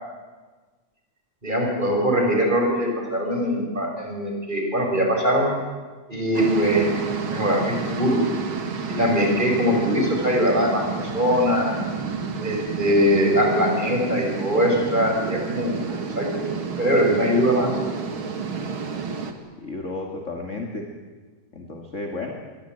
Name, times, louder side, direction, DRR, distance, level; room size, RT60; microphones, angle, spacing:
voice 1, 1.4-5.5 6.1-6.9 7.3-8.2 8.9-10.8 11.1-11.7 12.4-16.5 16.8-17.7, equal, 15° right, 1 dB, 5.6 m, -22 dB
sound 1, 6.3-19.3, right 5 dB, 45° right, 2.6 m, -30 dB
voice 2, 19.6-20.9 21.5-22.3, left 3 dB, 25° left, 2 dB, 2.3 m, -32 dB
25.5 x 22.5 x 9.1 m, 1.4 s
omnidirectional pair, 3.5 m